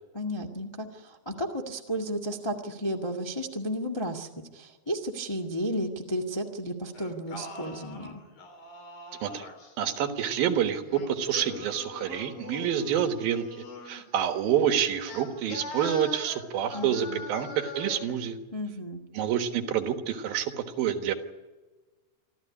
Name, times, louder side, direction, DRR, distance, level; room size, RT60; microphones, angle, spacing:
voice 1, 0.1-8.2 16.7-17.2 18.5-19.0, equal, 20° left, 2 dB, 0.7 m, -33 dB
Singing, 6.9-9.7 10.8-14.0 15.0-18.1, left 3 dB, 55° left, 5.2 m, -42 dB
voice 2, 9.8-13.5 13.9-18.4 19.1-21.1, right 9 dB, 80° right, 7 dB, 3.2 m, -28 dB
26.5 x 14.0 x 9.9 m, 1.2 s
omnidirectional pair, 4.2 m